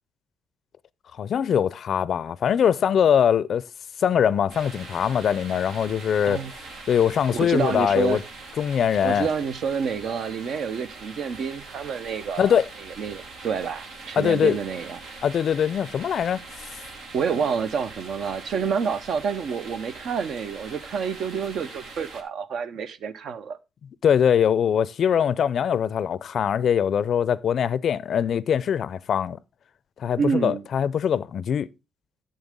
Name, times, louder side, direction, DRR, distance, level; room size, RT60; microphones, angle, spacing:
voice 1, 1.2-3.7 4.0-6.4 6.9-8.2 8.6-9.3 12.4-12.7 14.2-14.6 15.2-16.4 24.0-29.4 30.0-31.7, left 8 dB, 60° left, 0.4 m, -22 dB
sound 1, 4.5-22.2, right 3 dB, 90° right, 2.2 m, -42 dB
voice 2, 6.2-6.5 7.3-8.2 9.0-12.6 13.0-15.0 17.1-23.6 30.2-30.7, right 6 dB, 65° right, 0.8 m, -28 dB
11.0 x 7.5 x 3.6 m
cardioid pair, 90°, 0 cm